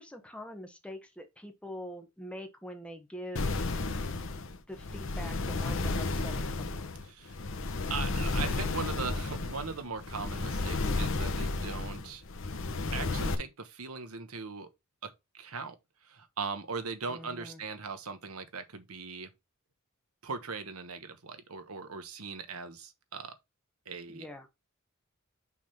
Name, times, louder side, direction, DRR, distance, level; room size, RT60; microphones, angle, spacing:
voice 1, 0.0-3.6 4.7-6.9 17.1-17.6 24.1-24.5, equal, 5° left, 1.2 m, -44 dB
sound 1, 3.4-13.4, left 3 dB, 60° left, 0.9 m, -32 dB
voice 2, 7.0-7.4 7.9-12.2 12.9-14.7 15.3-15.7 16.0-19.3 20.2-23.3 23.9-24.3, right 4 dB, 90° right, 1.2 m, -39 dB
6.1 x 3.6 x 5.7 m
head